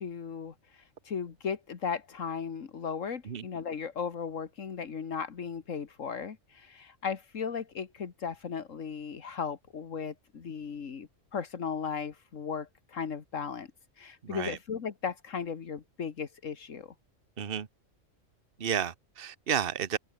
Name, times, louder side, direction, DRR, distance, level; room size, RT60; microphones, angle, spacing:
voice 1, 0.0-13.7 14.0-16.9, left 6 dB, 80° left, 1.9 m, -36 dB
voice 2, 14.2-14.6 17.4-17.7 18.6-20.0, right 8 dB, 50° right, 1.3 m, -32 dB
omnidirectional pair, 1.3 m